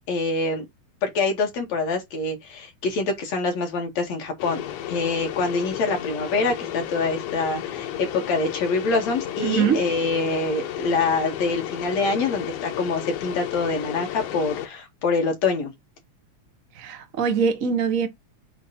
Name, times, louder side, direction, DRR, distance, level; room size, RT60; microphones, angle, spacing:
voice 1, 0.1-0.7 1.0-4.6 4.9-15.7, left 3 dB, 65° left, 3.3 m, -25 dB
sound 1, 4.4-14.7, left 11 dB, 85° left, 2.5 m, -33 dB
voice 2, 9.4-9.8 16.7-18.1, right 6 dB, 55° right, 0.9 m, -23 dB
8.0 x 4.1 x 4.3 m
omnidirectional pair, 3.4 m